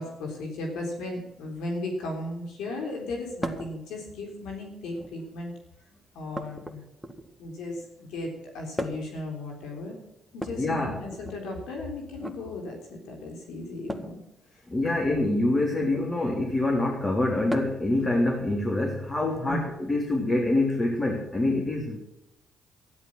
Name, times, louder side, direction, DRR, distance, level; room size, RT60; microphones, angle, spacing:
voice 1, 0.0-5.5 6.1-6.8 7.4-10.0 10.3-14.2 14.5-14.6 19.2-19.6, left 2 dB, 80° left, 2 dB, 3.6 m, -36 dB
sound 1, 3.4-3.8 4.8-5.3 6.3-7.4 8.8-9.2 10.3-11.4 12.1-12.4 13.9-14.2 15.8-16.1 17.5-17.9 19.4-19.5 20.7-20.8, equal, ahead, 2.0 m, -37 dB
voice 2, 10.6-11.0 14.7-22.0, left 2 dB, 25° left, 0 dB, 3.7 m, -25 dB
13.0 x 11.0 x 6.2 m, 0.89 s
supercardioid pair, 65°, 0 cm